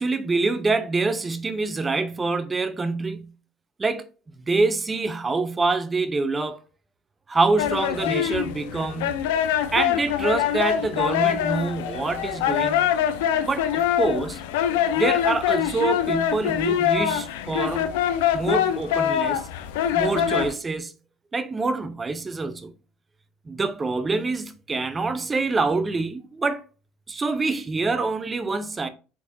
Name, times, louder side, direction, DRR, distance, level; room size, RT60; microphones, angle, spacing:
voice 1, 0.0-3.3 3.8-4.1 4.4-6.6 7.3-9.2 9.7-12.9 13.4-14.4 15.0-17.9 18.3-19.4 19.9-20.9 21.3-22.7 23.5-26.6 27.1-28.9, right 3 dB, 20° right, 0.7 m, -26 dB
sound 1, 7.6-20.5, left 10 dB, 85° left, 0.5 m, -24 dB
4.5 x 4.0 x 2.3 m
supercardioid pair, 95°, 0 cm